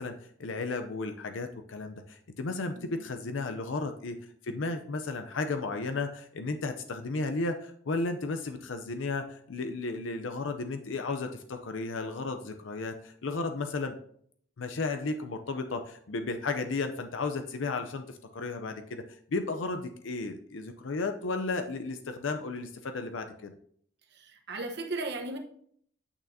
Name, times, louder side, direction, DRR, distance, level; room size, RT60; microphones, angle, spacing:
voice 1, 0.0-4.2 4.4-14.0 14.6-19.0 19.3-23.5, left 3 dB, 80° left, 0.6 m, -34 dB
voice 2, 24.1-25.4, right 2 dB, 60° right, 1.0 m, -36 dB
8.9 x 6.4 x 2.7 m
head